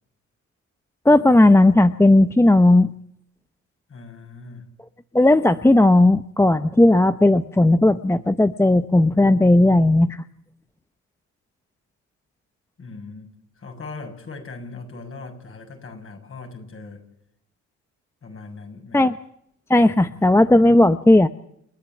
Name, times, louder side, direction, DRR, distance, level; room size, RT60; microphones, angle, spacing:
voice 1, 1.0-2.9 5.1-10.2 18.9-19.1 19.7-21.3, left 1 dB, 10° left, 11 dB, 0.8 m, -15 dB
voice 2, 3.9-4.7 12.8-13.3 13.6-17.0 18.2-19.1 20.0-20.4, left 3 dB, 45° left, 4 dB, 7.1 m, -39 dB
30.0 x 10.5 x 9.0 m, 0.72 s
cardioid pair, 90°, 30 cm